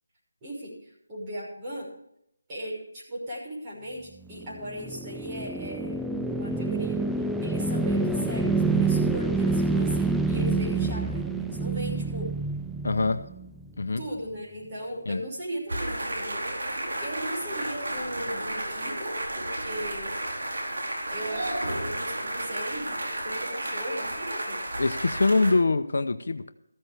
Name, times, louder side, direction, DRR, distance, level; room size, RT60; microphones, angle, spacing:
voice 1, 0.4-1.9 2.5-6.0 6.3-7.0 7.4-12.3 14.0-20.2 21.1-24.6, equal, 20° right, -5 dB, 6.0 m, -37 dB
sound 1, 4.3-13.6, right 3 dB, ahead, 0.3 m, -27 dB
voice 2, 12.8-13.3 13.8-14.0 15.1-15.2 24.8-26.5, left 3 dB, 65° left, 9 dB, 0.9 m, -24 dB
sound 2, 15.7-25.5, right 1 dB, 75° right, 4.0 m, -32 dB
15.0 x 13.0 x 3.5 m, 0.77 s
figure-of-eight pair, 170°, 0 cm